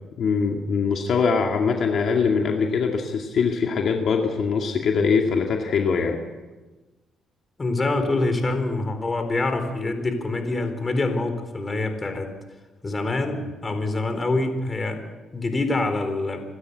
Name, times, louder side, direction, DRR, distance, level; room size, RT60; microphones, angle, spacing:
voice 1, 0.2-6.2, left 5 dB, 60° left, 2 dB, 2.3 m, -22 dB
voice 2, 7.6-12.3 12.8-15.0 15.3-16.4, left 2 dB, 30° left, 7 dB, 4.1 m, -25 dB
26.5 x 13.0 x 8.4 m, 1.2 s
cardioid pair, 90°, 0 cm